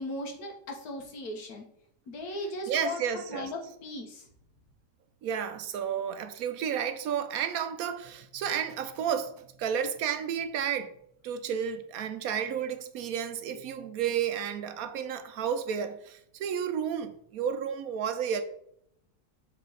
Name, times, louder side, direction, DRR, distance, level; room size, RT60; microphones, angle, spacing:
voice 1, 0.0-1.6 2.1-3.0 3.3-4.3, left 1 dB, 70° left, 1.7 m, -37 dB
voice 2, 2.7-3.5 5.2-9.3 9.6-10.9 11.2-18.4, right 8 dB, 75° right, 1.0 m, -32 dB
7.5 x 3.6 x 3.9 m
omnidirectional pair, 1.7 m